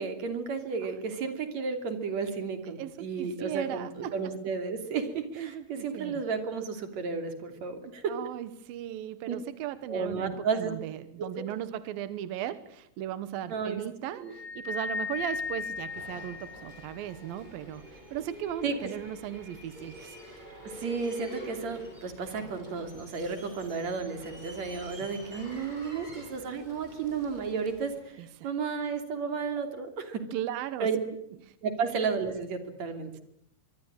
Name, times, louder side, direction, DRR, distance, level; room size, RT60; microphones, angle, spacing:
voice 1, 0.0-8.1 9.3-9.4 9.9-10.7 13.5-13.8 14.2-14.3 18.6-18.7 20.6-30.2 30.8-31.0 31.6-33.2, right 5 dB, 40° right, 8 dB, 3.5 m, -33 dB
voice 2, 2.8-4.3 5.3-6.2 8.1-20.2 25.2-25.3 28.2-28.5 30.3-30.9 31.5-31.6, right 11 dB, 75° right, 14 dB, 2.2 m, -37 dB
sound 1, 14.3-17.0, left 4 dB, 40° left, 5.2 m, -36 dB
sound 2, 15.1-28.0, equal, 10° right, 7.8 m, -47 dB
24.0 x 24.0 x 8.7 m, 0.73 s
omnidirectional pair, 5.6 m